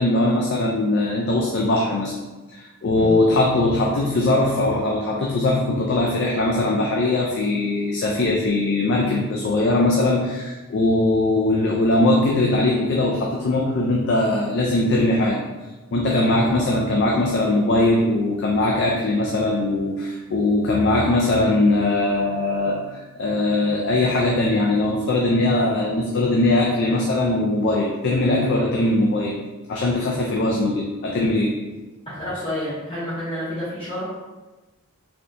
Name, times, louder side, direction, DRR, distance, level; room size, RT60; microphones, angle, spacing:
voice 1, 0.0-2.1 2.5-15.4 15.9-29.3 29.7-31.5, left 2 dB, 50° left, -1 dB, 0.4 m, -20 dB
voice 2, 32.1-34.1, left 1 dB, 25° left, -11 dB, 0.8 m, -29 dB
4.0 x 2.8 x 2.5 m, 1.2 s
head